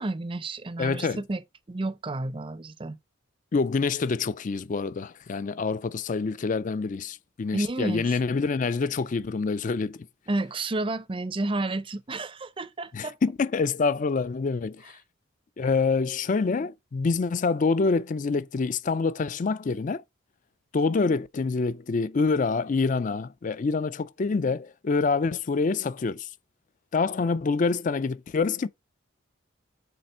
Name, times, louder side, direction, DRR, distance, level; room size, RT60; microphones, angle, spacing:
voice 1, 0.0-1.4 1.7-3.0 7.5-8.1 10.3-13.2, right 2 dB, 25° right, 0.5 m, -31 dB
voice 2, 0.8-1.2 3.5-10.1 12.9-15.0 15.6-20.0 20.7-26.3 26.9-28.7, left 4 dB, 40° left, 0.4 m, -26 dB
6.8 x 4.2 x 4.3 m
head